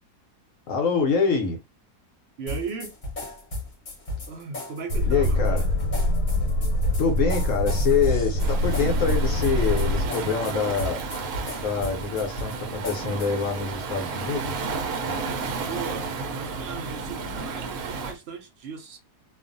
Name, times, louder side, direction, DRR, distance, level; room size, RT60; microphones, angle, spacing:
voice 1, 0.7-1.6 5.1-5.6 7.0-11.0 11.6-14.7, left 5 dB, 65° left, 0.9 m, -25 dB
voice 2, 2.4-2.9 4.3-5.7 8.4-8.5 15.7-19.0, right 5 dB, 80° right, 0.5 m, -37 dB
sound 1, 2.5-13.5, left 2 dB, 35° left, 0.8 m, -36 dB
Boat Water vehicle, 4.9-10.1, left 1 dB, 85° left, 1.2 m, -24 dB
Waves surf, 8.4-18.2, right 4 dB, 65° right, 0.8 m, -32 dB
2.5 x 2.4 x 2.5 m
omnidirectional pair, 1.7 m